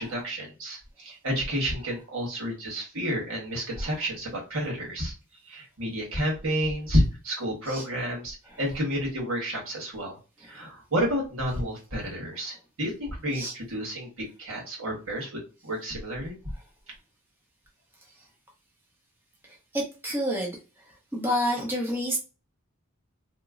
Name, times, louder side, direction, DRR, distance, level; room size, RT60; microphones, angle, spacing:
voice 1, 0.0-5.1 5.5-16.4, equal, 70° right, -2 dB, 1.6 m, -30 dB
voice 2, 19.7-20.6 21.1-22.2, equal, 10° right, -2 dB, 0.7 m, -28 dB
2.9 x 2.1 x 3.7 m, 0.32 s
head